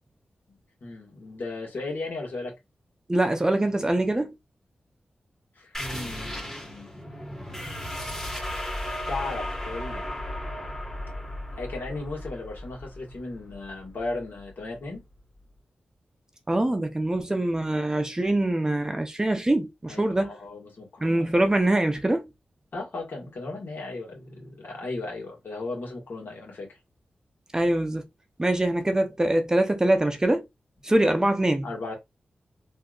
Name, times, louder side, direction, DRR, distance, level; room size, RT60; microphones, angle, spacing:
voice 1, 0.8-2.5 5.6-7.2 9.1-10.0 11.6-15.0 19.9-21.4 22.7-26.7 31.6-32.0, left 2 dB, 70° left, 1.9 m, -36 dB
voice 2, 3.1-4.3 16.5-20.3 21.0-22.3 27.5-28.0 28.4-30.5 30.8-31.7, right 1 dB, 20° right, 0.6 m, -24 dB
sound 1, 5.7-15.0, left 1 dB, 10° left, 1.3 m, -35 dB
3.5 x 2.7 x 2.4 m
wide cardioid pair, 75°, 3 cm